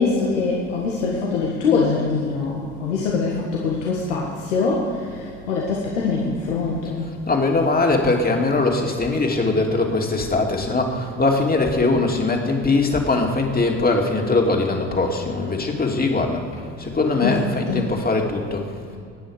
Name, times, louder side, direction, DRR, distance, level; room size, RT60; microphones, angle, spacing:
voice 1, 0.0-7.2 17.2-17.9, left 4 dB, 90° left, -3 dB, 1.7 m, -23 dB
voice 2, 7.3-16.4 16.8-18.7, left 3 dB, 25° left, 1 dB, 2.6 m, -21 dB
23.0 x 9.5 x 5.0 m, 2.5 s
hypercardioid pair, 60°, 35 cm